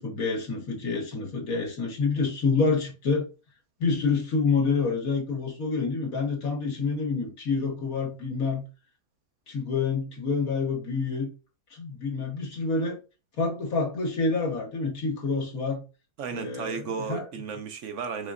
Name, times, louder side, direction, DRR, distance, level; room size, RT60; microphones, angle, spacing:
voice 1, 0.0-3.2 3.8-8.6 9.5-11.3 11.7-13.0 13.4-15.8 16.3-17.2, left 4 dB, 75° left, 1.9 m, -27 dB
voice 2, 16.2-18.3, right 6 dB, 65° right, 0.9 m, -34 dB
5.0 x 3.7 x 2.5 m
omnidirectional pair, 1.5 m